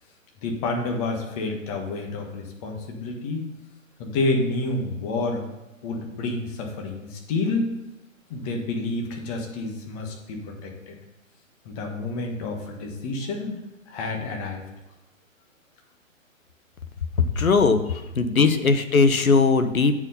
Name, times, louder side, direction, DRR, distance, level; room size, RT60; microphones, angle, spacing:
voice 1, 0.4-3.4 4.0-5.5 5.8-7.7 8.3-11.0 11.6-14.6, left 2 dB, 25° left, 2 dB, 1.4 m, -29 dB
voice 2, 17.4-19.9, left 4 dB, 85° left, 9 dB, 1.0 m, -19 dB
8.6 x 4.8 x 5.6 m, 1.0 s
figure-of-eight pair, 130°, 41 cm